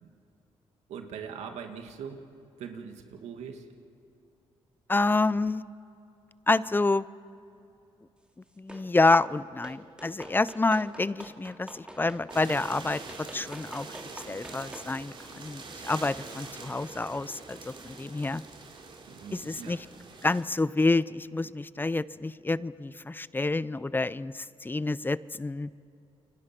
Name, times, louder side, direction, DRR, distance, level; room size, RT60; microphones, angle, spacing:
voice 1, 0.9-2.2 2.6-3.6 19.1-19.8, right 7 dB, 90° right, 5 dB, 2.1 m, -41 dB
voice 2, 4.9-5.6 6.5-7.0 8.6-13.0 13.3-13.9 14.3-18.4 19.3-19.9 20.2-25.7, left 3 dB, 20° left, 18 dB, 0.6 m, -28 dB
sound 1, 8.7-9.2 9.6-14.9, right 1 dB, 10° right, 2.6 m, -47 dB
sound 2, 12.3-20.4, right 3 dB, 50° right, 3.8 m, -45 dB
29.0 x 23.5 x 6.1 m, 2.7 s
cardioid pair, 80°, 11 cm